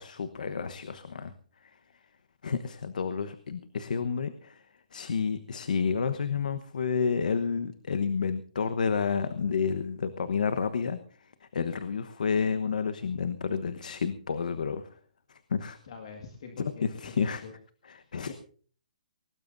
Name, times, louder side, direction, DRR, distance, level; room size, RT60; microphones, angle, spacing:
voice 1, 0.0-1.3 1.6-1.7 2.4-4.6 4.9-14.9 15.3-15.8 16.6-17.4 17.9-18.3, left 6 dB, 65° left, 11 dB, 1.1 m, -30 dB
voice 2, 15.8-17.2 17.4-17.5 18.3-18.4, left 5 dB, 40° left, 4 dB, 2.0 m, -44 dB
23.0 x 18.0 x 2.7 m, 0.44 s
hypercardioid pair, 175°, 5 cm